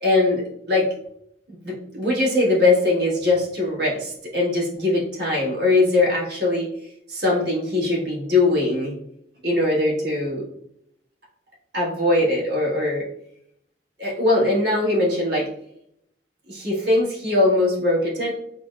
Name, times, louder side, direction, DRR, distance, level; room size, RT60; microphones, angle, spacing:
voice 1, 0.0-0.9 1.6-6.7 7.1-8.9 9.4-10.4 11.7-13.0 14.0-15.5 16.5-18.3, left 2 dB, 60° right, -5 dB, 1.4 m, -21 dB
5.2 x 2.2 x 2.4 m, 0.73 s
head